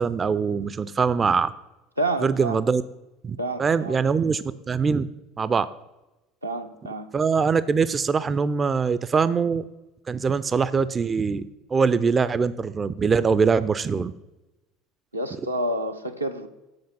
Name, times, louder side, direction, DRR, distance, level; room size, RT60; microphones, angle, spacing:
voice 1, 0.0-1.5 2.2-2.8 3.2-5.1 5.4-5.7 7.1-9.6 10.1-14.1, right 5 dB, 25° right, 15 dB, 0.3 m, -23 dB
voice 2, 2.0-2.6 3.4-4.0 6.4-7.1 15.1-16.5, right 1 dB, 85° right, 5 dB, 0.5 m, -29 dB
7.9 x 5.1 x 5.6 m, 0.99 s
figure-of-eight pair, 65°, 0 cm